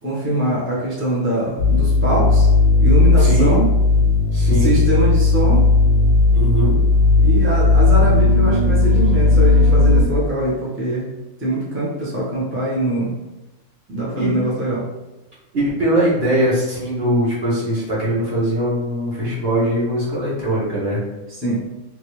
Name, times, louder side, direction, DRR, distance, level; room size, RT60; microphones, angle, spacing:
voice 1, 0.0-2.5 2.8-3.7 4.5-5.6 7.2-11.1 11.4-13.1 13.9-14.9 21.3-21.6, right 1 dB, 10° right, -8 dB, 0.6 m, -22 dB
sound 1, 1.6-10.0, left 3 dB, 30° left, 0.5 m, -15 dB
voice 2, 3.1-3.6 4.3-4.8 6.3-6.7 14.2-14.3 15.5-21.0, right 1 dB, 45° right, -8 dB, 1.3 m, -21 dB
2.9 x 2.8 x 3.1 m, 1.0 s
omnidirectional pair, 1.5 m